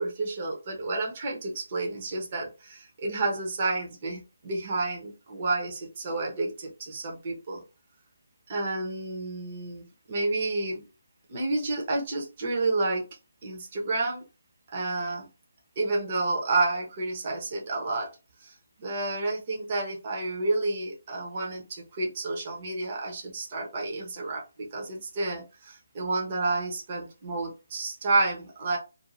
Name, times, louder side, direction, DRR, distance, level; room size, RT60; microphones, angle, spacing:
voice 1, 0.0-7.6 8.5-10.8 11.3-13.0 13.4-14.2 14.7-15.3 15.8-18.1 18.4-28.8, right 2 dB, 35° right, 0 dB, 0.8 m, -30 dB
2.6 x 2.1 x 3.0 m, 0.30 s
hypercardioid pair, 165°, 0 cm